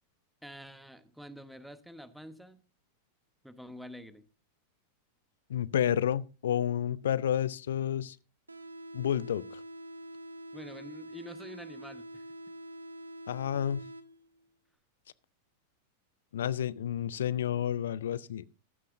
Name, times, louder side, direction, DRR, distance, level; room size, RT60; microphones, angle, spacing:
voice 1, 0.4-2.6 3.4-4.2 10.5-12.2, equal, ahead, 1.1 m, -47 dB
voice 2, 5.5-8.2 8.9-9.6 13.3-13.8 16.3-18.4, left 10 dB, 60° left, 0.4 m, -30 dB
sound 1, 8.5-14.5, right 1 dB, 80° right, 0.7 m, -46 dB
14.5 x 12.5 x 2.6 m
figure-of-eight pair, 90°, 0 cm